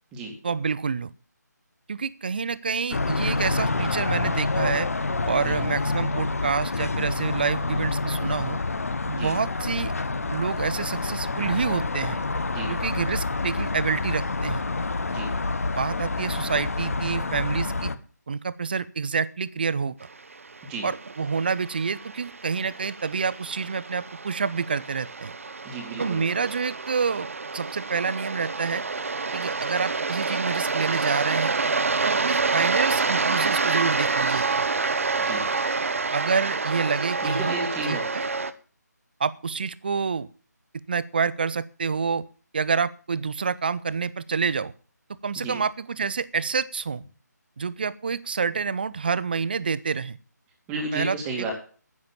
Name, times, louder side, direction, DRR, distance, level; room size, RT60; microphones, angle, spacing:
voice 1, 0.4-1.1 1.9-4.9 5.3-8.6 9.1-9.9 10.3-12.2 12.7-14.6 15.8-17.9 18.3-19.9 20.8-25.3 26.0-28.8 29.3-31.5 32.0-34.7 36.1-37.6 37.9-38.2 39.2-40.3 40.9-42.3 42.5-44.7 45.2-47.0 47.6-50.2 50.9-51.5, right 5 dB, 30° right, 19 dB, 0.6 m, -28 dB
sound 1, 2.9-18.0, left 3 dB, 50° left, 1.1 m, -27 dB
sound 2, 20.2-38.5, right 4 dB, 45° right, 1.0 m, -28 dB
voice 2, 25.6-26.2 35.2-35.4 37.2-38.0 45.4-45.6 50.7-51.5, right 2 dB, 10° right, 1 dB, 2.4 m, -32 dB
10.0 x 9.6 x 7.3 m, 0.40 s
figure-of-eight pair, 155°, 10 cm